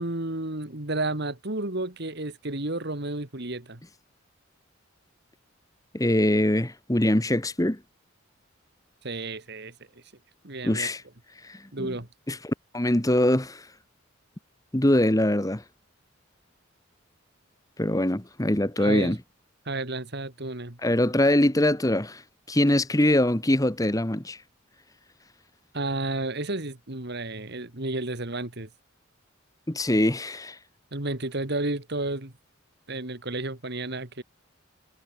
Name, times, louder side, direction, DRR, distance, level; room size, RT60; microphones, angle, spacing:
voice 1, 0.0-3.8 9.0-9.7 10.4-10.9 11.7-12.1 18.8-19.1 19.7-20.8 25.7-28.7 30.9-32.3 32.9-34.2, right 2 dB, 55° right, 2.4 m, -32 dB
voice 2, 5.9-7.8 10.6-11.0 11.4-11.9 12.3-13.6 14.7-15.6 17.8-19.2 20.8-22.2 22.5-24.4 29.7-30.6, left 1 dB, 15° left, 1.4 m, -23 dB
head